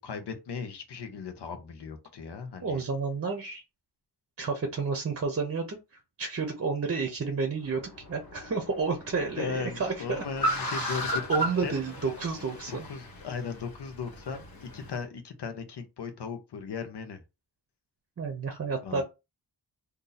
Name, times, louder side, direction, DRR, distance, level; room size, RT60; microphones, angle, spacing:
voice 1, 0.0-2.8 9.4-11.2 11.6-11.7 12.7-17.2 18.8-19.0, left 5 dB, 90° left, 0.9 m, -37 dB
voice 2, 2.6-3.6 4.4-5.8 6.2-10.2 10.7-11.0 11.3-12.9 18.2-19.0, right 4 dB, 35° right, 0.6 m, -30 dB
Car, 7.6-15.0, right 1 dB, 60° left, 1.2 m, -36 dB
2.7 x 2.6 x 3.9 m
wide cardioid pair, 130°, 40 cm